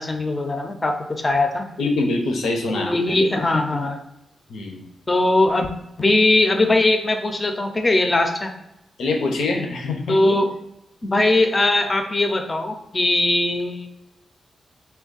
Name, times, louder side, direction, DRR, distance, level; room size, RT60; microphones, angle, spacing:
voice 1, 0.0-1.7 2.7-4.0 5.1-5.7 6.0-8.5 10.1-10.5 11.0-13.9, left 2 dB, 30° left, 6 dB, 0.5 m, -20 dB
voice 2, 1.8-3.2 4.5-4.9 9.0-10.2, left 2 dB, 90° left, 2 dB, 0.6 m, -24 dB
3.5 x 2.2 x 3.9 m, 0.86 s
cardioid pair, 75°, 0 cm